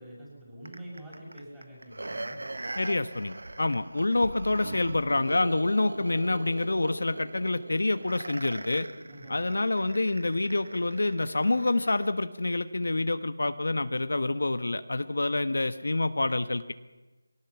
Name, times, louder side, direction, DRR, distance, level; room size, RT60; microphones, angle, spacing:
voice 1, 0.0-2.4 9.1-9.4, right 1 dB, 5° right, -6 dB, 6.3 m, -46 dB
sound 1, 0.6-12.1 12.6-12.7, right 2 dB, 75° right, 1.5 m, -41 dB
voice 2, 2.7-8.9 9.3-16.7, left 2 dB, 75° left, 10 dB, 1.2 m, -27 dB
23.0 x 17.5 x 7.1 m, 1.2 s
figure-of-eight pair, 175°, 0 cm